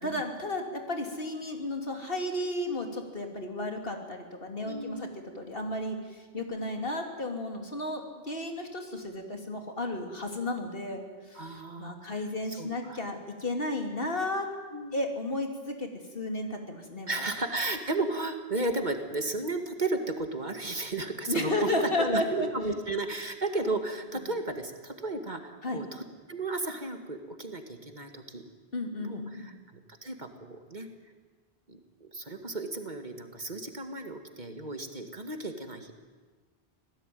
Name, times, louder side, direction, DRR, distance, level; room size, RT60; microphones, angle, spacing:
voice 1, 0.0-11.0 11.3-14.5 14.9-17.1 21.3-22.5 25.6-25.8 28.7-29.5, left 1 dB, 65° left, 3 dB, 3.0 m, -33 dB
voice 2, 4.6-5.1 6.3-6.7 11.3-12.2 12.6-13.0 14.7-15.0 17.1-28.4 29.0-29.5 30.0-30.9 31.7-35.9, right 2 dB, 45° right, 6 dB, 2.1 m, -34 dB
25.5 x 17.5 x 9.4 m, 1.4 s
omnidirectional pair, 1.0 m